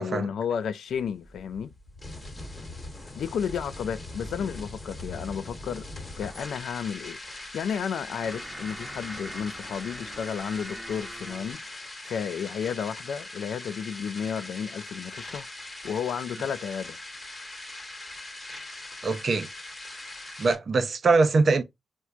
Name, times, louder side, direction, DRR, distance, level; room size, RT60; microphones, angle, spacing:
voice 1, 0.0-1.7 3.2-15.5 15.8-17.0, left 7 dB, 80° left, 0.3 m, -32 dB
sound 1, 0.9-20.5, left 2 dB, 30° left, 1.2 m, -41 dB
sound 2, 6.2-11.5, right 1 dB, 10° right, 0.8 m, -44 dB
voice 2, 19.0-19.5 20.4-21.6, right 3 dB, 50° right, 0.6 m, -22 dB
4.4 x 2.2 x 2.4 m
cardioid pair, 80°, 0 cm